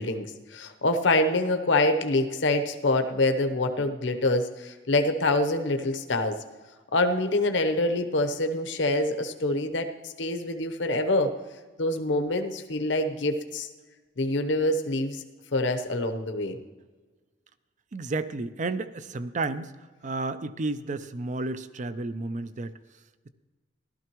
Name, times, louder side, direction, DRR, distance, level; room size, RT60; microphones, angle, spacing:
voice 1, 0.0-6.4 6.9-11.3 11.8-13.7 14.2-15.2 15.5-16.6, left 2 dB, 70° left, 6 dB, 0.9 m, -26 dB
voice 2, 17.9-19.7 20.0-22.7, right 3 dB, 40° right, 13 dB, 0.5 m, -32 dB
15.5 x 12.5 x 3.0 m, 1.3 s
head